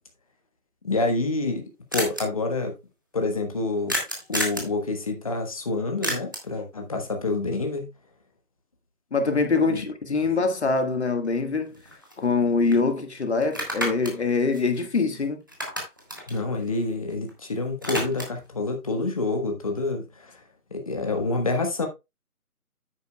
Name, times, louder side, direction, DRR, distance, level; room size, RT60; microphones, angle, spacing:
voice 1, 0.8-1.6 1.9-2.7 3.1-3.9 4.3-7.9 9.6-9.9 16.3-20.4 20.7-21.9, left 3 dB, 25° left, 1.3 m, -27 dB
sound 1, 1.2-1.3 1.5-1.6 1.9-2.2 3.9-4.7 6.0-6.6 10.8-10.9 11.2-12.4 12.7-12.8 13.4-15.2 15.5-17.3 17.6-18.5, equal, 15° right, 0.9 m, -31 dB
voice 2, 9.1-11.8 12.2-15.4, left 4 dB, 45° left, 1.6 m, -24 dB
10.0 x 8.7 x 2.2 m
figure-of-eight pair, 165°, 45 cm